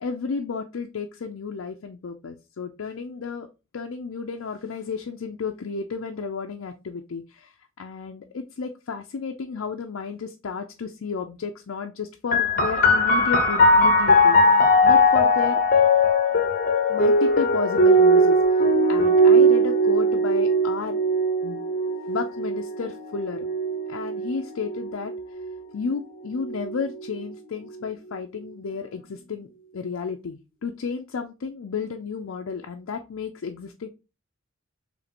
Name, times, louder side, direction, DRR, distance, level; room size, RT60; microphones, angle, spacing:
voice 1, 0.0-3.5 3.7-15.6 16.9-18.4 18.9-21.0 21.4-21.6 22.1-23.5 23.9-25.1 25.7-33.9, left 5 dB, 80° left, 3 dB, 0.5 m, -32 dB
sound 1, 12.3-25.5 26.4-27.2, equal, 45° left, 0.8 m, -19 dB
5.0 x 3.2 x 2.9 m, 0.29 s
head